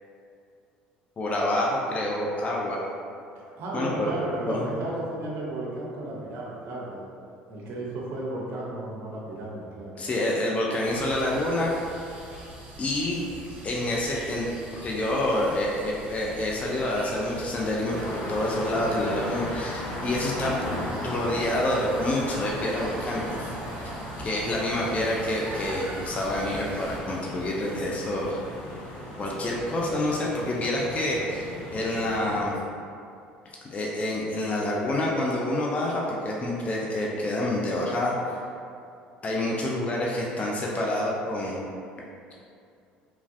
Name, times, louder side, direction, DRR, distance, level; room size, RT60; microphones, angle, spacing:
voice 1, 1.2-2.8 3.7-4.1 4.5-4.6 10.0-11.8 12.8-13.2 13.6-14.5 14.8-20.6 21.0-23.6 24.2-28.4 29.2-32.5 33.7-38.4 39.2-41.6, left 1 dB, 30° left, -3 dB, 0.4 m, -27 dB
voice 2, 3.4-7.1 7.5-9.9 24.7-24.9, right 1 dB, 60° right, -4 dB, 0.8 m, -34 dB
sound 1, 10.8-27.0, right 2 dB, 40° right, 1.1 m, -42 dB
sound 2, 17.9-32.4, left 1 dB, 50° left, 0.8 m, -37 dB
3.0 x 2.5 x 2.5 m, 2.5 s
hypercardioid pair, 70°, 4 cm